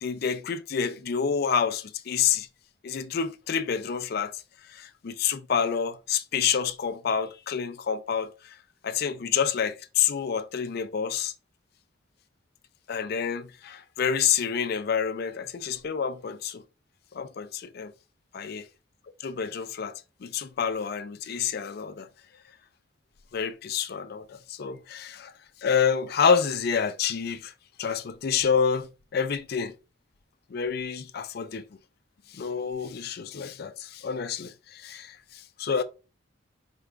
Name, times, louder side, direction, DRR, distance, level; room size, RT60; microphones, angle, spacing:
voice 1, 0.0-2.5 2.8-4.4 4.7-8.6 8.8-11.3 12.9-16.6 17.1-17.9 18.3-18.7 19.2-22.1 23.3-25.3 25.6-27.5 27.8-29.7 30.5-31.6 32.3-35.8, left 7 dB, 50° left, 0.4 m, -28 dB
4.6 x 2.4 x 3.3 m
head